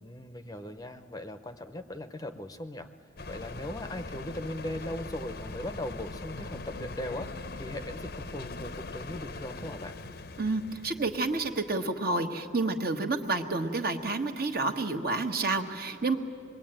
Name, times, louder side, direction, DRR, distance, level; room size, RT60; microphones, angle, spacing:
voice 1, 0.0-2.9 3.3-10.0, left 1 dB, 20° left, 8 dB, 0.7 m, -39 dB
sound 1, 3.2-11.7, left 3 dB, 50° left, 0.7 m, -41 dB
voice 2, 10.4-16.2, right 3 dB, 50° right, 5 dB, 1.4 m, -29 dB
26.0 x 22.0 x 9.0 m, 2.5 s
head